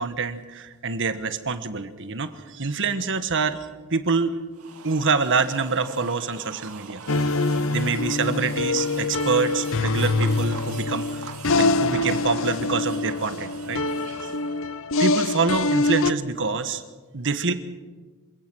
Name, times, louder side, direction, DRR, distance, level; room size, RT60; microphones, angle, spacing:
voice 1, 0.0-3.6 3.9-4.4 4.8-7.4 7.6-11.3 11.5-14.3 15.0-16.8 17.1-17.5, right 4 dB, 55° right, 10 dB, 1.4 m, -26 dB
sound 1, 4.5-14.6, right 5 dB, 75° right, 2.1 m, -42 dB
sound 2, 7.1-16.1, left 2 dB, 65° left, 0.8 m, -24 dB
27.5 x 16.5 x 6.3 m, 1.3 s
head